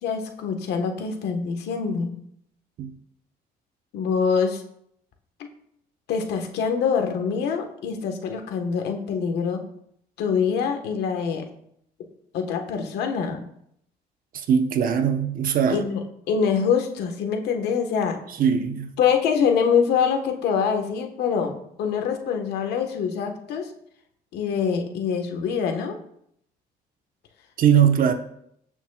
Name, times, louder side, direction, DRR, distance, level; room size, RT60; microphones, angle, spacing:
voice 1, 0.0-2.2 3.9-4.6 5.4-5.5 6.1-9.6 10.2-11.5 12.3-13.4 15.7-18.2 19.0-23.7 24.3-26.0, left 6 dB, 80° left, 1.4 m, -24 dB
voice 2, 14.5-15.8 18.4-18.9 27.6-28.1, right 8 dB, 55° right, 1.0 m, -20 dB
15.5 x 6.2 x 2.4 m
cardioid pair, 110°, 17 cm